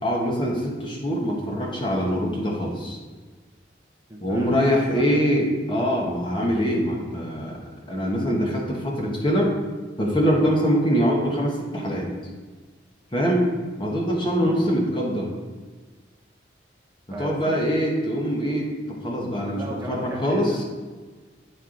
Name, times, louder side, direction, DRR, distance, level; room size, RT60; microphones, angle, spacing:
voice 1, 0.0-3.0 4.2-7.6 7.9-9.5 10.0-12.1 13.1-13.5 13.8-15.3 17.1-20.6, equal, 25° left, -1 dB, 1.1 m, -23 dB
voice 2, 4.1-4.5 4.9-5.3 14.4-14.6 17.1-17.6 19.5-20.6, right 1 dB, 15° right, -3 dB, 0.8 m, -36 dB
9.3 x 4.4 x 3.8 m, 1.4 s
head